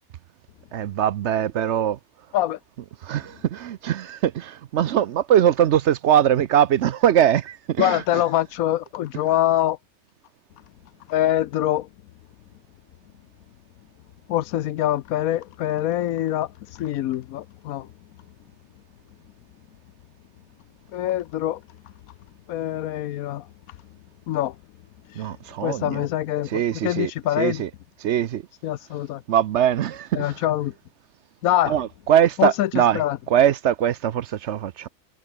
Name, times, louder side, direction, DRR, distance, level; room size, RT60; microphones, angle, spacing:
voice 1, 0.7-2.0 3.0-8.2 25.2-26.0 26.5-27.1 27.4-27.7 28.0-28.4 29.3-30.3 31.6-33.0 33.3-34.9, right 10 dB, 60° right, 0.8 m, -21 dB
voice 2, 7.8-9.8 11.1-11.9 14.3-17.9 20.9-21.6 22.5-23.5 24.3-24.6 25.1-25.2 25.6-27.7 28.6-29.2 30.1-30.7 31.4-31.8 32.4-33.2, left 13 dB, 80° left, 1.1 m, -24 dB
omnidirectional pair, 1.5 m